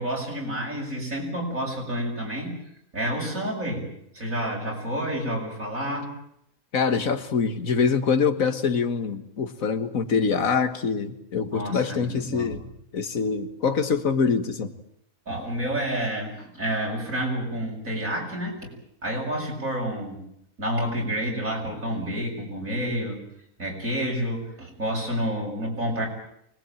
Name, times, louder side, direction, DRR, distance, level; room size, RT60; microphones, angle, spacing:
voice 1, 0.0-2.6 2.9-6.1 11.5-12.6 15.3-18.7 19.0-20.2 20.6-23.2 23.6-26.1, equal, 70° right, 7.4 m, -29 dB
voice 2, 6.7-12.6 12.9-14.7, left 5 dB, 75° left, 2.0 m, -24 dB
24.5 x 20.5 x 9.1 m
omnidirectional pair, 1.4 m